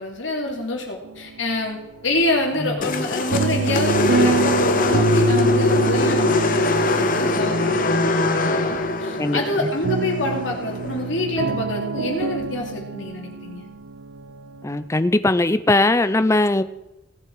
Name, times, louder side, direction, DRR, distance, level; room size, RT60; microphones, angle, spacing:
voice 1, 0.0-13.7, left 2 dB, 70° left, 0 dB, 2.7 m, -27 dB
sound 1, 1.0-1.8 2.1-14.8, right 4 dB, 80° right, 0.5 m, -27 dB
sound 2, 2.8-11.1, left 2 dB, 45° left, 1.0 m, -22 dB
voice 2, 14.6-16.6, left 2 dB, 15° left, 12 dB, 0.4 m, -19 dB
18.0 x 8.0 x 4.7 m, 0.95 s
head